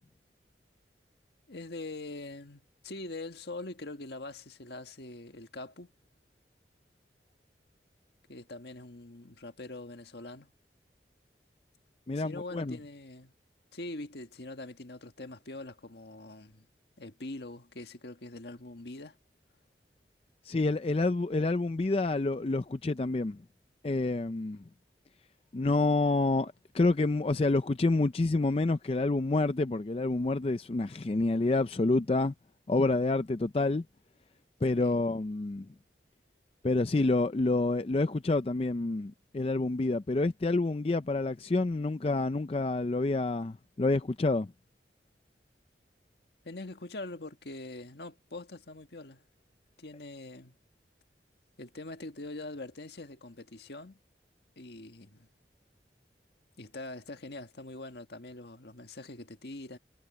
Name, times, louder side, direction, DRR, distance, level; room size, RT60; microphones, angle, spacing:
voice 1, 1.5-5.9 8.3-10.5 12.1-13.3 13.7-16.6 17.0-19.2 34.7-35.1 46.4-49.2 49.8-50.5 51.6-54.0 54.6-55.3 56.6-59.8, left 2 dB, 70° left, 1.6 m, -43 dB
voice 2, 12.1-12.8 20.4-23.4 23.8-24.6 25.5-32.3 32.7-33.8 34.6-35.7 36.6-44.5, left 2 dB, 35° left, 0.4 m, -28 dB
head